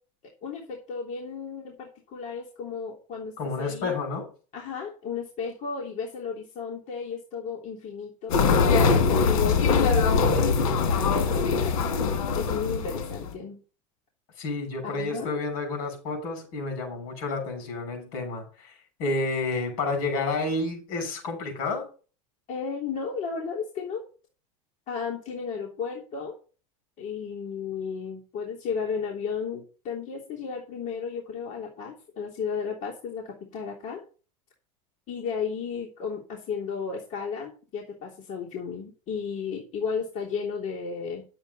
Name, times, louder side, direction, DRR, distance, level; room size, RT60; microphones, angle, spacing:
voice 1, 0.4-3.9 4.5-11.8 12.1-13.6 14.8-15.3 22.5-24.0 24.9-26.4 27.0-34.0 35.1-41.2, left 6 dB, 45° left, -3 dB, 3.2 m, -34 dB
voice 2, 3.4-4.3 14.4-18.7 19.0-21.9, left 3 dB, 70° left, 4 dB, 6.7 m, -30 dB
sound 1, 8.3-13.3, left 5 dB, 85° left, 2.1 m, -22 dB
11.0 x 8.3 x 4.1 m, 0.37 s
supercardioid pair, 120°, 18 cm